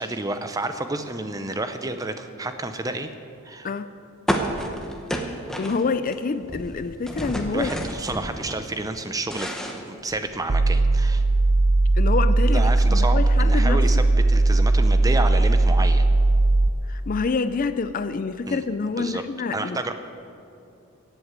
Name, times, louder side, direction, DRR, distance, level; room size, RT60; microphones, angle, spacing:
voice 1, 0.0-3.1 3.4-3.7 7.5-11.2 12.5-16.1 18.5-18.6 19.0-19.2 19.5-19.9, right 2 dB, 15° right, 8 dB, 0.7 m, -30 dB
sound 1, 4.3-6.2 6.4-8.6 9.0-10.5, equal, ahead, 1.0 m, -30 dB
voice 2, 5.6-7.7 12.0-13.8 16.9-19.8, left 4 dB, 40° left, 12 dB, 0.4 m, -27 dB
sound 2, 10.5-16.7, right 2 dB, 55° right, 0.7 m, -18 dB
17.0 x 8.0 x 8.2 m, 2.6 s
head